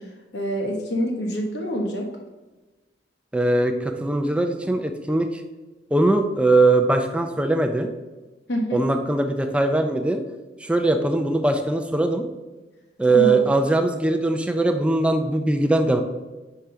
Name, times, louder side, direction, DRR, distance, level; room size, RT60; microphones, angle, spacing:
voice 1, 0.3-2.1 8.5-8.8 13.1-13.3, equal, 75° left, 1 dB, 1.3 m, -26 dB
voice 2, 3.3-5.4 5.9-7.9 8.7-10.2 10.6-12.2 13.0-16.0, right 2 dB, 5° right, 5 dB, 0.4 m, -21 dB
4.7 x 3.9 x 5.6 m, 1.2 s
head